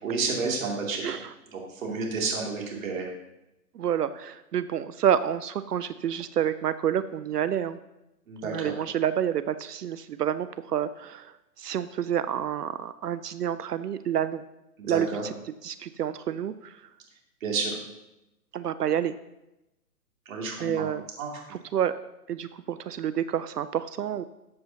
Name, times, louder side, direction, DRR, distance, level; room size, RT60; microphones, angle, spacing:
voice 1, 0.0-1.0 1.5-3.1 8.3-8.7 14.8-15.2 17.4-17.8 20.3-20.9 21.2-21.3, right 4 dB, 55° right, -1 dB, 2.9 m, -30 dB
voice 2, 1.0-1.3 3.7-7.8 8.4-14.4 14.8-15.1 15.6-16.8 18.5-19.2 20.6-21.0 21.7-21.9 22.3-24.2, right 9 dB, 70° right, 14 dB, 0.6 m, -28 dB
13.0 x 7.5 x 2.9 m, 0.92 s
hypercardioid pair, 145°, 49 cm